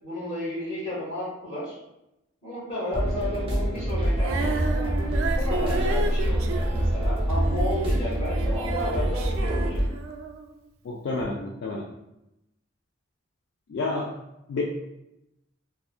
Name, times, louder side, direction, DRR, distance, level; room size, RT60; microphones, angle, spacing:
voice 1, 0.0-1.8 2.4-4.9 5.4-9.9, left 1 dB, 25° left, -9 dB, 1.3 m, -33 dB
sound 1, 2.9-9.9, right 1 dB, 30° right, 0.5 m, -25 dB
Female singing, 4.1-10.5 11.2-11.3, right 4 dB, 80° right, 0.3 m, -33 dB
voice 2, 10.8-11.9 13.7-14.1 14.5-14.6, left 2 dB, 60° left, -2 dB, 0.3 m, -29 dB
2.7 x 2.3 x 2.3 m, 0.88 s
head